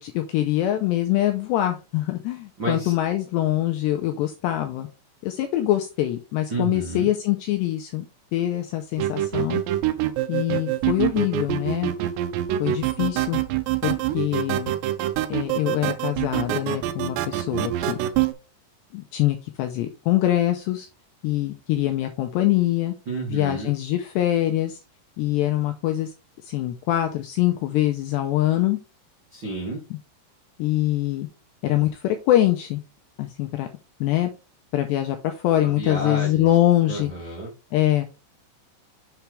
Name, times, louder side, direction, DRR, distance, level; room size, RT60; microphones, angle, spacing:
voice 1, 0.0-4.9 5.2-8.1 8.3-9.6 10.3-11.9 12.6-13.4 13.8-14.7 15.3-18.0 18.9-20.9 21.2-22.9 23.3-24.8 25.2-26.1 26.4-28.8 29.9-30.0 30.6-31.3 31.6-32.8 33.2-33.7 34.0-34.3 34.7-37.1 37.7-38.1, left 14 dB, 85° left, 2.4 m, -24 dB
voice 2, 2.6-2.9 6.5-7.1 23.1-23.7 29.3-29.8 35.6-36.5 36.9-37.5, right 2 dB, 60° right, 1.1 m, -30 dB
sound 1, 9.0-18.3, right 12 dB, 85° right, 2.5 m, -25 dB
7.1 x 5.9 x 3.3 m
omnidirectional pair, 5.7 m